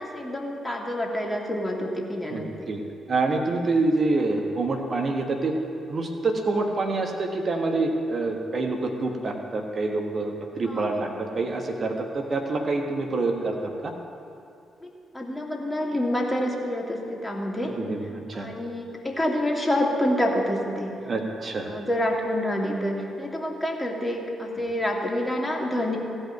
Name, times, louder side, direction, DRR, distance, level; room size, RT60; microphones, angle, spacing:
voice 1, 0.0-2.7 10.6-11.1 14.8-17.8 18.3-20.9 21.7-26.0, left 1 dB, 15° left, -1 dB, 2.7 m, -28 dB
voice 2, 2.3-2.8 3.1-5.5 5.9-13.9 17.6-18.5 21.0-21.8, right 3 dB, 50° right, 3 dB, 1.4 m, -27 dB
16.0 x 5.5 x 9.3 m, 2.6 s
hypercardioid pair, 40°, 0 cm